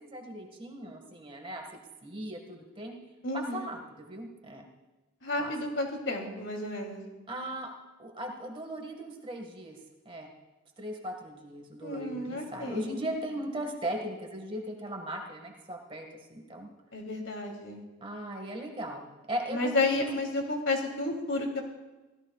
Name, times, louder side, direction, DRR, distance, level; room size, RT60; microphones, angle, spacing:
voice 1, 0.0-1.6 2.0-2.9 3.3-4.7 5.4-5.5 7.3-7.7 8.0-9.8 10.1-10.3 10.8-16.7 18.0-20.1, right 1 dB, 25° right, 2 dB, 1.8 m, -38 dB
voice 2, 3.2-3.6 5.2-7.0 11.8-13.0 16.9-17.8 19.5-21.6, left 2 dB, 60° left, 1 dB, 3.0 m, -31 dB
26.0 x 16.5 x 2.4 m, 1.1 s
head